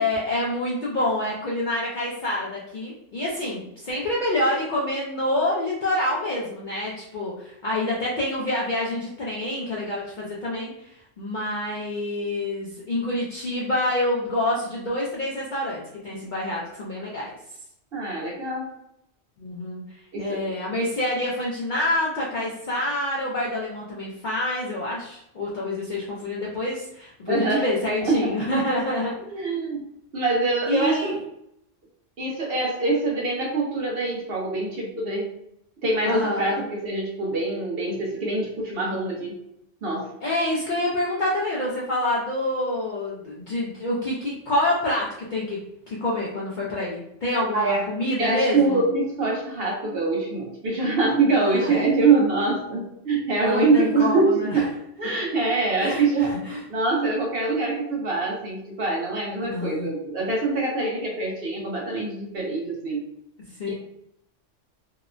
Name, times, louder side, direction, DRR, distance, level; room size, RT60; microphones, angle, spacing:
voice 1, 0.0-17.3 19.4-19.8 20.2-29.1 30.7-31.1 36.0-36.6 40.2-45.6 45.9-48.8 51.3-51.9 53.4-54.6 55.8-56.6 59.4-59.9 63.6-63.7, left 1 dB, 60° left, -5 dB, 0.5 m, -27 dB
voice 2, 17.9-18.7 20.1-20.5 27.3-27.7 28.0-28.3 29.3-29.9 30.1-31.2 32.2-35.3 35.8-39.4 39.8-40.1 47.5-47.9 48.2-56.4 56.7-63.0 63.7-63.8, right 3 dB, 60° right, -2 dB, 0.7 m, -24 dB
2.8 x 2.1 x 2.4 m, 0.77 s
omnidirectional pair, 1.3 m